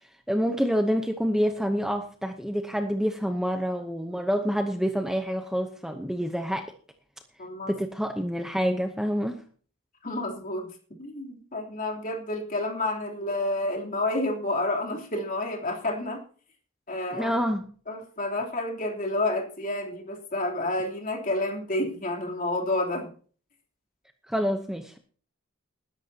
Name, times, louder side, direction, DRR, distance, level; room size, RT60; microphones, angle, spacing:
voice 1, 0.3-6.7 7.7-9.4 17.1-17.7 24.3-25.0, equal, ahead, 0.8 m, -27 dB
voice 2, 7.4-7.8 10.0-10.7 11.0-16.2 16.9-17.3 17.9-23.1, left 2 dB, 40° left, 3.3 m, -29 dB
20.0 x 11.0 x 2.9 m
head